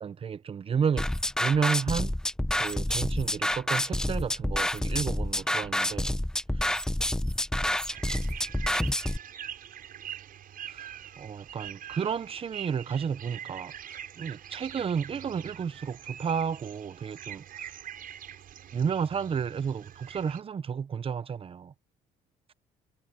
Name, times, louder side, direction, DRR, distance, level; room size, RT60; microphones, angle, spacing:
voice 1, 0.0-1.1 1.4-2.1 2.6-6.1 6.5-6.7 10.7-10.9 11.2-17.7 18.7-21.7, right 6 dB, 35° right, 0.8 m, -32 dB
sound 1, 1.0-9.2, left 1 dB, 5° left, 1.0 m, -28 dB
sound 2, 7.9-20.4, right 10 dB, 55° right, 7.4 m, -43 dB
cardioid pair, 110°, 17 cm